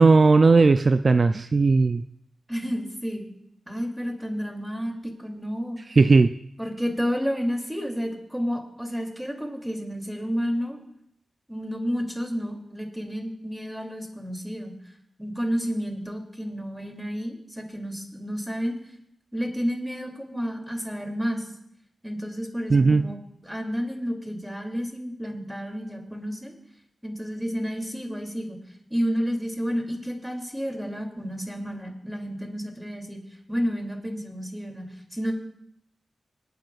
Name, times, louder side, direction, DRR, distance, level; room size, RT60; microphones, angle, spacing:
voice 1, 0.0-2.0 6.0-6.4 22.7-23.1, right 3 dB, 50° right, 11 dB, 0.3 m, -17 dB
voice 2, 2.5-3.3 3.7-4.9 5.2-5.8 6.6-10.8 11.5-14.7 15.2-18.7 19.3-21.5 22.0-23.2 23.4-26.5 27.0-28.6 28.9-33.2 33.5-34.9 35.1-35.3, equal, 5° right, 2 dB, 2.7 m, -30 dB
26.5 x 9.1 x 2.4 m, 0.74 s
cardioid pair, 60°, 0 cm